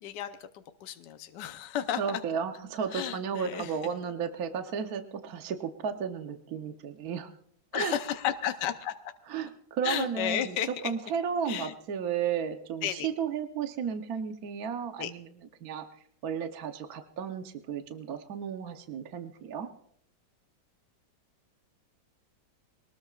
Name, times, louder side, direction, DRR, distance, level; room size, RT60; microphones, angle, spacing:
voice 1, 0.0-2.2 2.9-3.7 7.7-8.9 9.8-10.9 11.5-11.7 12.8-13.1 15.0-15.1, left 10 dB, 75° left, 8 dB, 1.4 m, -33 dB
voice 2, 2.0-7.3 7.7-7.9 9.3-10.6 10.8-15.3 15.6-15.8 16.2-19.7, right 7 dB, 60° right, 6 dB, 1.3 m, -33 dB
22.5 x 19.5 x 2.4 m, 0.67 s
omnidirectional pair, 2.0 m